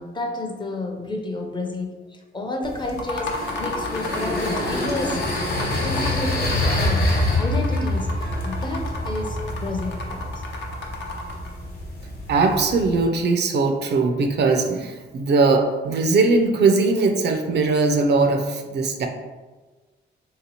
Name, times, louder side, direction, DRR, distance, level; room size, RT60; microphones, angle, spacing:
voice 1, 0.0-10.4, left 2 dB, 25° left, 2 dB, 0.5 m, -31 dB
sound 1, 2.6-13.1, left 1 dB, 50° left, 1.0 m, -26 dB
sound 2, 2.9-11.5, left 3 dB, 75° left, 0.6 m, -33 dB
voice 2, 12.3-19.1, right 3 dB, 65° right, 5 dB, 0.4 m, -20 dB
3.3 x 2.8 x 2.8 m, 1.3 s
cardioid pair, 95°, 19 cm